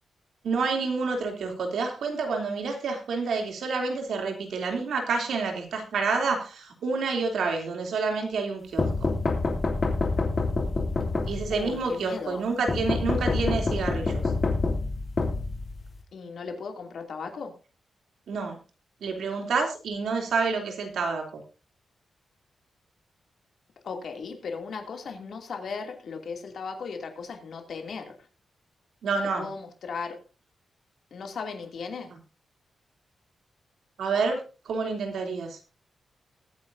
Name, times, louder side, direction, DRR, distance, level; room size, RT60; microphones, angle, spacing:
voice 1, 0.4-9.1 11.3-14.2 18.3-18.6 19.0-21.4 29.0-29.5 34.0-35.6, right 4 dB, 90° right, 3.1 m, -28 dB
sound 1, 8.8-11.7 12.7-16.0, left 3 dB, 40° left, 2.8 m, -27 dB
voice 2, 11.5-12.4 16.1-17.6 23.8-28.2 29.4-30.2 31.1-32.1, left 5 dB, 65° left, 2.6 m, -36 dB
21.5 x 9.6 x 2.7 m
wide cardioid pair, 135°, 0 cm